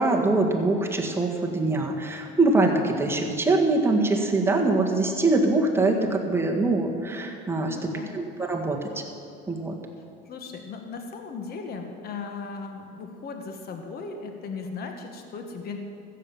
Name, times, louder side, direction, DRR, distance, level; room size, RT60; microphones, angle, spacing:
voice 1, 0.0-8.9 9.5-9.8, right 2 dB, 10° right, 0 dB, 1.7 m, -23 dB
voice 2, 7.6-8.2 10.3-15.8, left 4 dB, 55° left, 4 dB, 1.3 m, -37 dB
15.0 x 7.5 x 7.3 m, 2.6 s
cardioid pair, 120°, 20 cm